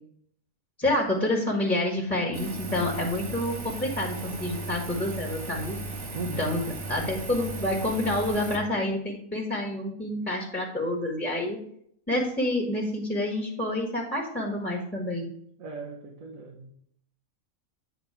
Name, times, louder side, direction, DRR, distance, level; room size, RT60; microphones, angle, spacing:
voice 1, 0.8-5.8 6.4-11.6 12.1-15.3, left 1 dB, 5° left, -2 dB, 1.4 m, -28 dB
Engine, 2.3-8.6, right 2 dB, 60° right, 1.2 m, -36 dB
voice 2, 6.1-6.5 15.6-16.7, right 4 dB, 75° right, 0 dB, 1.5 m, -38 dB
8.8 x 4.1 x 5.7 m, 0.67 s
omnidirectional pair, 1.5 m